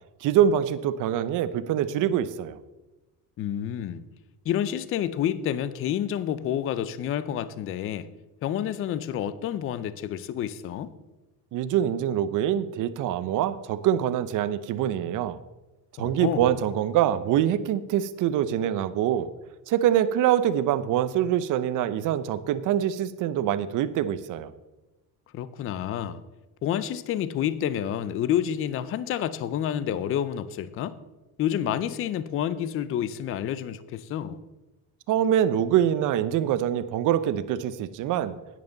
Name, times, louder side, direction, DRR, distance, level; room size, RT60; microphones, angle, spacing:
voice 1, 0.2-2.6 11.5-15.4 16.0-19.3 19.7-24.5 35.1-38.4, right 10 dB, 50° right, 14 dB, 0.6 m, -24 dB
voice 2, 3.4-4.0 4.5-8.1 8.4-10.9 16.0-16.5 25.3-26.2 26.6-30.9 31.4-34.4, left 10 dB, 35° left, 15 dB, 0.4 m, -29 dB
10.5 x 9.4 x 3.9 m, 1.1 s
cardioid pair, 150°, 40 cm